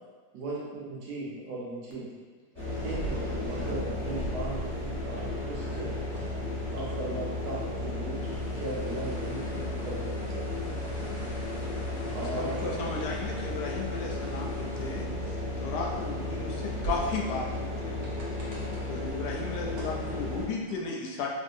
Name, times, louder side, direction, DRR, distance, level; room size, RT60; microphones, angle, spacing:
voice 1, 0.3-2.1 2.8-6.0 6.7-8.3 8.6-10.5 12.1-13.1, right 2 dB, 90° right, -5 dB, 1.3 m, -37 dB
sound 1, 2.5-20.5, left 1 dB, 25° left, 1.4 m, -34 dB
voice 2, 2.7-4.0 4.4-4.6 4.8-6.3 8.2-8.4 14.3-14.4 18.0-18.9 19.5-20.1 20.7-20.8, right 1 dB, 65° right, -6 dB, 0.7 m, -50 dB
sound 2, 8.2-15.0, left 1 dB, 55° left, 0.8 m, -48 dB
voice 3, 12.4-15.0 15.6-18.0 18.9-21.3, left 4 dB, 80° left, -1 dB, 1.1 m, -35 dB
3.1 x 2.7 x 2.5 m, 1.4 s
omnidirectional pair, 1.7 m